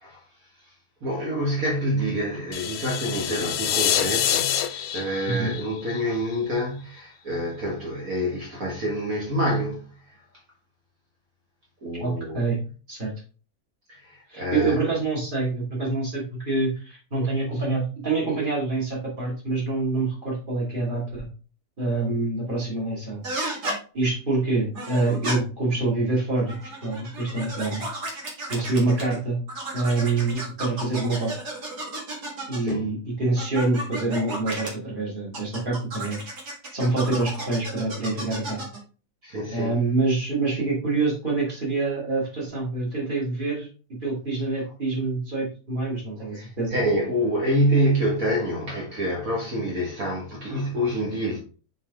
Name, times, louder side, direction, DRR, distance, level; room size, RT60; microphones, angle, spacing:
voice 1, 1.0-10.2 11.8-12.5 13.9-14.8 32.6-32.8 39.2-39.7 46.3-51.4, equal, 60° right, 2.0 m, -27 dB
sound 1, 2.5-6.6, left 10 dB, 75° left, 1.1 m, -26 dB
voice 2, 12.0-12.6 12.9-13.1 14.3-21.3 21.8-23.2 23.9-26.6 26.8-27.8 28.5-29.4 29.7-31.3 32.5-36.2 36.7-38.6 39.5-43.7 44.0-46.8, right 3 dB, 30° right, 2.6 m, -26 dB
sound 2, 23.2-23.8 24.7-25.4 26.4-29.2 29.5-32.7 33.4-34.7 35.3-38.8, right 1 dB, 85° right, 2.5 m, -33 dB
5.5 x 5.1 x 3.6 m
omnidirectional pair, 1.7 m